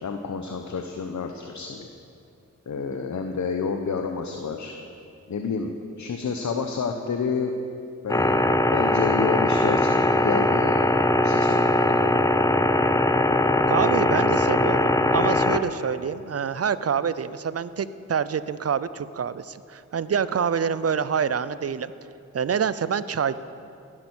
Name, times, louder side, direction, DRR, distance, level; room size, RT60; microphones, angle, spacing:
voice 1, 0.0-1.9 2.7-4.7 5.3-5.7 6.0-7.5 8.0-10.8 11.1-12.2 14.0-14.8, left 5 dB, 70° left, 4 dB, 1.0 m, -30 dB
sound 1, 8.1-15.6, left 1 dB, 10° left, 0.7 m, -21 dB
voice 2, 13.7-21.9 22.3-23.4, right 7 dB, 55° right, 15 dB, 0.6 m, -26 dB
16.5 x 11.0 x 6.3 m, 2.5 s
cardioid pair, 70°, 30 cm